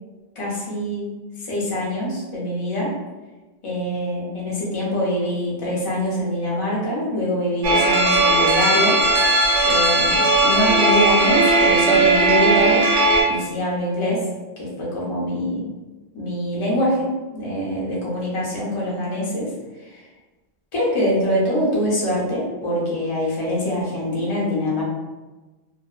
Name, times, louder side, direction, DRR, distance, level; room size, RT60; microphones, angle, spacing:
voice 1, 0.4-1.1 1.4-2.9 3.6-9.0 9.6-12.8 13.3-14.3 14.6-15.6 16.1-17.1 17.3-19.5 19.8-20.0 20.7-24.8, equal, 35° left, -5 dB, 0.5 m, -24 dB
sound 1, 7.6-13.2, right 2 dB, 70° right, 0.9 m, -17 dB
2.5 x 2.1 x 2.3 m, 1.2 s
omnidirectional pair, 1.3 m